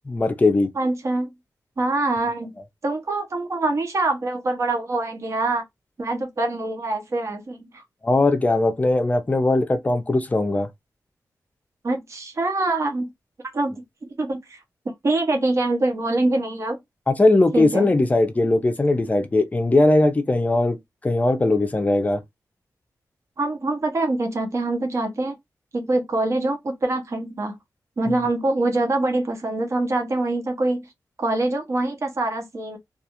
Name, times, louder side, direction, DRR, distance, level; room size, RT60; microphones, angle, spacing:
voice 1, 0.1-0.7 8.0-10.7 17.1-20.8 21.0-22.2, left 2 dB, 20° left, 0.5 m, -19 dB
voice 2, 0.8-1.3 1.8-2.6 2.8-5.6 6.0-7.8 11.8-13.1 13.5-13.7 14.2-14.6 15.0-16.8 17.5-17.9 23.4-25.4 25.7-27.6 28.0-30.9 31.2-32.8, right 2 dB, 45° right, 0.7 m, -24 dB
2.3 x 2.3 x 2.8 m
wide cardioid pair, 150°, 7 cm